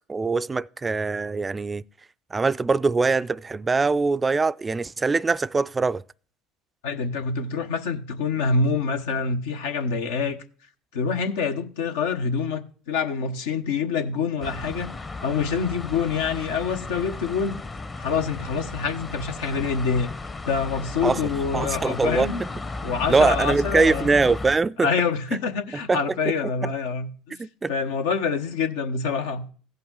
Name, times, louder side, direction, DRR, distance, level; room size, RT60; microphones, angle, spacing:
voice 1, 0.1-1.8 2.3-6.0 21.0-21.2 21.5-22.3 23.1-24.9 25.9-26.0 26.6-26.7 27.4-27.7, right 4 dB, 25° right, 0.3 m, -22 dB
voice 2, 6.8-10.4 10.9-14.9 15.2-17.6 18.0-20.1 20.5-22.4 22.8-24.1 24.8-29.4, left 5 dB, 80° left, 0.9 m, -26 dB
sound 1, 14.4-24.6, left 3 dB, 25° left, 0.8 m, -34 dB
16.0 x 5.7 x 3.7 m
hypercardioid pair, 75°, 0 cm